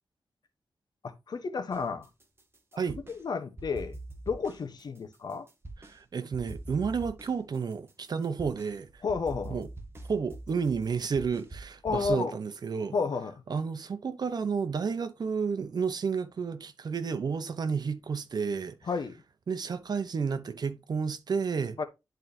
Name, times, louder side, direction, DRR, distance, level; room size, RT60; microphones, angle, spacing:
voice 1, 1.0-2.1 2.7-2.8 3.1-4.0 4.3-5.5 9.0-9.6 11.8-12.3 12.9-13.3 18.9-19.1 21.8-21.9, left 5 dB, 65° left, 1.1 m, -31 dB
sound 1, 1.7-3.2 3.6-6.0 6.3-12.1, right 2 dB, 30° right, 1.5 m, -44 dB
voice 2, 5.8-9.0 9.4-9.7 10.1-13.0 13.5-18.8 19.5-21.8, right 5 dB, 60° right, 0.9 m, -31 dB
10.5 x 4.5 x 2.7 m
wide cardioid pair, 110°, 8 cm